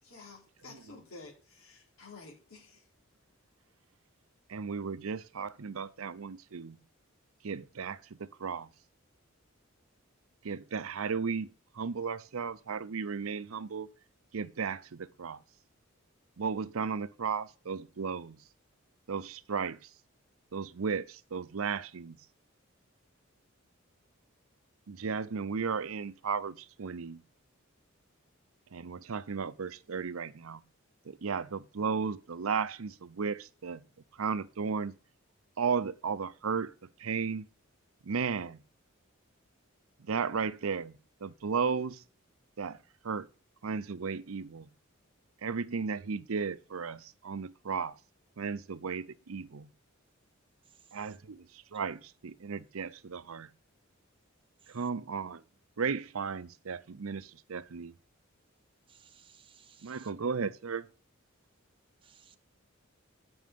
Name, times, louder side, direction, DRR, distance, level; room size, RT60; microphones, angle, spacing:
voice 1, 0.0-2.9, left 3 dB, 85° left, 3.5 m, -51 dB
voice 2, 4.5-6.8 7.4-8.7 10.4-11.5 11.7-13.9 14.3-15.4 16.4-18.4 19.1-19.9 20.5-22.2 24.9-27.2 28.7-30.6 31.0-33.8 34.2-34.9 35.6-36.7 37.0-37.5 38.0-38.6 40.0-42.0 42.6-42.8 43.0-43.3 43.6-44.7 45.4-47.9 48.4-49.7 50.9-53.5 54.7-55.4 55.8-57.9 59.8-60.9, right 5 dB, 80° right, 0.6 m, -35 dB
voice 3, 58.9-60.1 62.0-62.4, right 7 dB, 25° right, 0.8 m, -60 dB
9.5 x 6.1 x 5.3 m
head